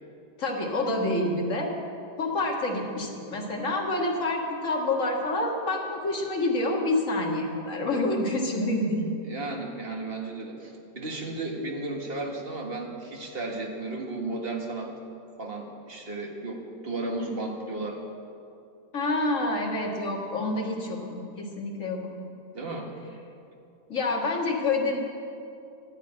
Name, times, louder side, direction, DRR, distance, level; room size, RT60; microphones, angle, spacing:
voice 1, 0.4-1.7 2.2-9.1 18.9-22.2 23.9-25.0, left 2 dB, 50° left, 0 dB, 2.1 m, -27 dB
voice 2, 9.2-14.9 15.4-16.6 16.8-18.0 22.5-22.9, right 2 dB, 35° right, 1 dB, 1.8 m, -34 dB
12.0 x 9.5 x 8.8 m, 2.6 s
omnidirectional pair, 1.8 m